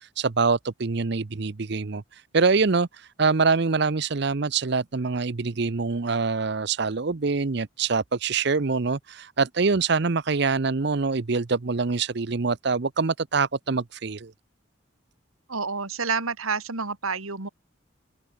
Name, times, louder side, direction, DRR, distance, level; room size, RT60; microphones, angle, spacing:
voice 1, 0.0-14.3, right 4 dB, 55° right, 0.7 m, -25 dB
voice 2, 15.5-17.5, right 5 dB, 90° right, 2.6 m, -29 dB
open air
head